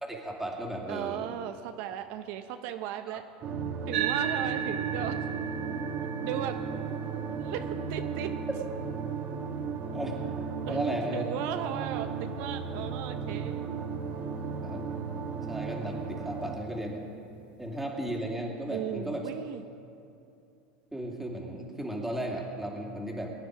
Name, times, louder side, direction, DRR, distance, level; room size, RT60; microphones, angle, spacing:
voice 1, 0.0-1.3 9.9-10.2 10.7-11.2 14.6-14.8 15.5-17.1 17.6-19.3 20.9-23.3, right 1 dB, 5° right, -1 dB, 2.7 m, -35 dB
voice 2, 0.9-3.3 3.9-5.2 6.2-6.6 7.4-8.3 10.6-13.8 18.7-19.6, right 11 dB, 60° right, 8 dB, 0.7 m, -36 dB
sound 1, 3.4-16.6, right 5 dB, 40° right, 1.8 m, -35 dB
sound 2, 3.9-12.7, right 9 dB, 80° right, 1.1 m, -37 dB
22.0 x 10.0 x 4.9 m, 2.6 s
supercardioid pair, 115°, 5 cm